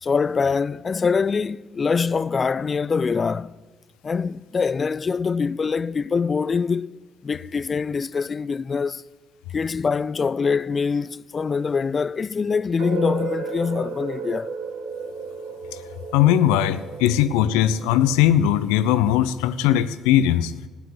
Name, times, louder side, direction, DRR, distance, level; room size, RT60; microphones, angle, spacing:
voice 1, 0.0-3.5 4.0-7.0 7.2-9.0 9.5-14.5, left 5 dB, 40° left, 0.5 m, -24 dB
sound 1, 12.8-18.7, right 5 dB, 75° right, 2.1 m, -34 dB
voice 2, 16.1-20.5, left 11 dB, 80° left, 0.7 m, -19 dB
14.5 x 9.1 x 8.5 m
hypercardioid pair, 55°, 0 cm